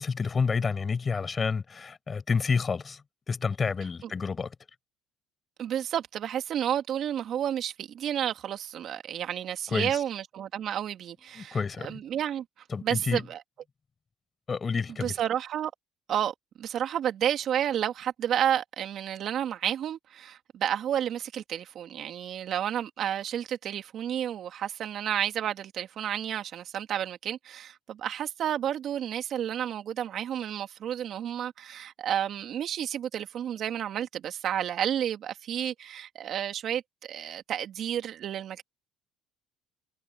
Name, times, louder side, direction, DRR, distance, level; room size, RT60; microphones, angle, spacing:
voice 1, 0.0-3.0 3.3-4.5 9.7-10.0 11.3-12.0 12.7-13.2 14.5-15.1, left 5 dB, 30° left, 5.6 m, -29 dB
voice 2, 5.6-12.4 12.8-13.4 15.0-15.7 16.1-38.6, right 10 dB, 55° right, 2.8 m, -31 dB
supercardioid pair, 85°, 0 cm